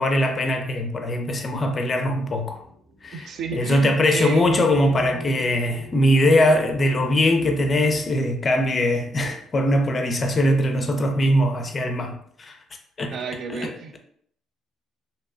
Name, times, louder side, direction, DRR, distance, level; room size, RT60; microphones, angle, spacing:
voice 1, 0.0-2.6 3.0-12.6 13.0-13.1 13.5-13.7, left 1 dB, 35° left, 0.4 m, -21 dB
sound 1, 2.2-9.9 10.9-11.0 11.4-11.9, left 1 dB, 40° right, 0.9 m, -42 dB
voice 2, 3.1-4.5 13.1-14.0, right 5 dB, 60° right, 0.3 m, -30 dB
2.6 x 2.2 x 2.4 m
supercardioid pair, 80°, 0 cm